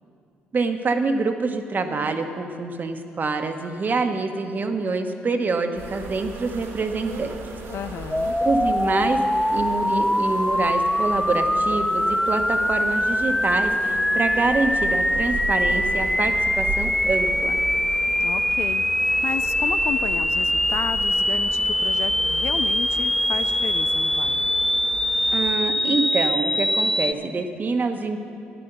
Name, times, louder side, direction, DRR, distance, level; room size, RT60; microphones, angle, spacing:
voice 1, 0.5-7.4 8.4-9.2 9.5-17.6 25.3-28.2, right 3 dB, 40° right, 6 dB, 1.2 m, -26 dB
sound 1, 5.8-25.6, right 3 dB, 70° right, 2.1 m, -36 dB
voice 2, 7.7-8.4 18.2-24.5, left 8 dB, 65° left, 12 dB, 0.5 m, -33 dB
sound 2, 8.1-27.1, left 1 dB, 5° left, 0.4 m, -23 dB
12.0 x 10.5 x 6.8 m, 2.4 s
supercardioid pair, 60°, 5 cm